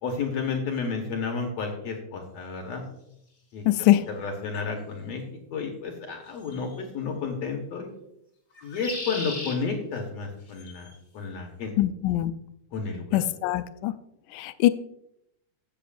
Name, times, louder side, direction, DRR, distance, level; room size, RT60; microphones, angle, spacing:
voice 1, 0.0-2.8 3.5-5.2 5.5-7.9 8.6-10.9 11.1-11.7 12.7-13.2, left 5 dB, 65° left, 2 dB, 2.1 m, -32 dB
voice 2, 3.7-4.0 11.8-12.3 13.1-13.9 14.3-14.7, left 14 dB, 80° left, 11 dB, 2.0 m, -22 dB
sound 1, 6.4-6.8 8.6-9.6 10.5-10.9, left 2 dB, 30° left, 2.1 m, -37 dB
14.5 x 7.8 x 2.5 m, 0.77 s
omnidirectional pair, 3.7 m